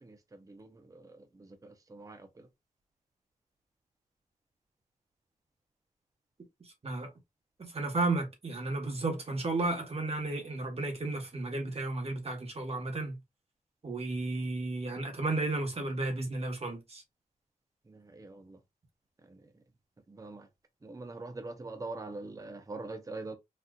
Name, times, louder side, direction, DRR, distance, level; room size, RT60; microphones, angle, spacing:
voice 1, 7.6-13.2 13.8-17.0, right 2 dB, 45° right, 1.2 m, -33 dB
voice 2, 20.8-23.4, right 3 dB, 25° right, 0.6 m, -41 dB
4.2 x 2.4 x 2.3 m
wide cardioid pair, 80°, 14 cm